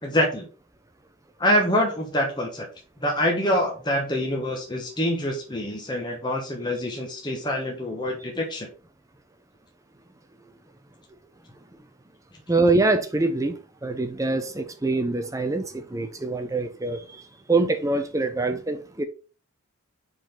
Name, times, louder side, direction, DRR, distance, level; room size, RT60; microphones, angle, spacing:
voice 1, 0.0-0.5 1.4-2.7 3.0-8.7, equal, 20° left, 1.1 m, -25 dB
voice 2, 12.5-19.0, right 3 dB, 15° right, 0.5 m, -25 dB
5.0 x 3.9 x 5.0 m
head